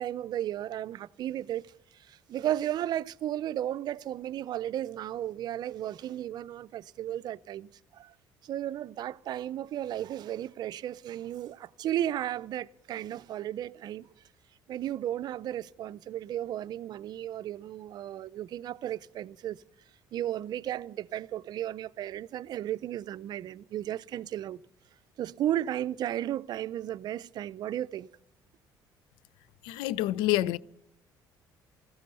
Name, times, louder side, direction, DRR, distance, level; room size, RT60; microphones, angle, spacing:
voice 1, 0.0-8.1 8.4-14.1 14.7-19.6 20.1-24.6 25.2-28.1, right 12 dB, 60° right, 0.5 m, -34 dB
voice 2, 29.7-30.6, left 15 dB, 85° left, 0.5 m, -27 dB
16.0 x 14.0 x 5.5 m
cardioid pair, 90°, 8 cm